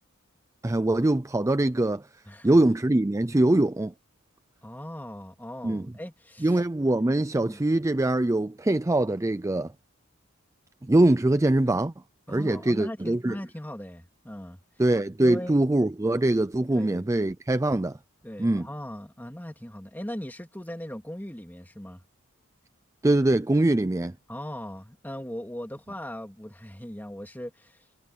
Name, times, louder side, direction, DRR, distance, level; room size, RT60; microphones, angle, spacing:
voice 1, 0.6-2.1 2.4-3.9 5.6-5.9 6.4-9.7 10.8-11.9 12.3-13.4 14.8-18.0 18.4-18.7 23.0-24.1, right 1 dB, 15° right, 0.4 m, -23 dB
voice 2, 2.3-2.7 4.6-6.6 7.3-7.6 12.3-14.6 15.2-15.6 16.8-17.0 18.2-22.0 24.3-27.8, equal, 10° left, 2.5 m, -39 dB
head